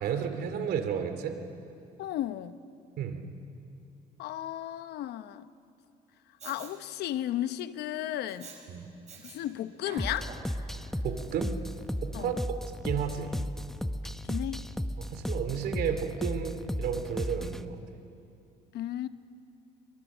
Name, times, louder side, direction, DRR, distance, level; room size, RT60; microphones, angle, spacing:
voice 1, 0.0-1.4 3.0-3.2 8.7-8.9 11.0-11.5 12.0-12.4 12.8-13.3 15.0-17.8, right 8 dB, 70° right, 7 dB, 2.6 m, -32 dB
voice 2, 2.0-2.6 4.2-5.5 6.4-8.5 9.2-10.3 12.1-12.4 14.2-14.7 18.7-19.1, left 12 dB, 75° left, 12 dB, 0.9 m, -34 dB
Respiratory sounds, 6.4-6.7 8.3-8.6 9.1-9.4 9.7-10.5 11.2-11.3, right 5 dB, 40° right, 5.7 m, -46 dB
sound 1, 10.0-17.7, equal, ahead, 0.8 m, -35 dB
24.0 x 23.5 x 7.3 m, 2.6 s
cardioid pair, 110°, 17 cm